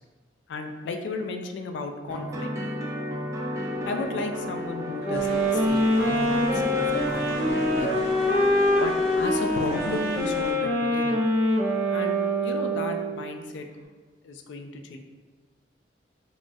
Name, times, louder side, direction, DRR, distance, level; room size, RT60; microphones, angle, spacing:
voice 1, 0.5-2.5 3.9-8.0 8.8-11.2 11.9-12.2 12.4-13.7 14.2-15.0, left 3 dB, 90° left, 5 dB, 0.3 m, -34 dB
sound 1, 2.1-10.0, equal, 20° right, 0.3 m, -33 dB
sound 2, 5.0-13.2, equal, 85° right, 0.6 m, -24 dB
sound 3, 5.1-10.5, equal, 60° left, 0.9 m, -42 dB
2.9 x 2.3 x 2.6 m, 1.4 s
head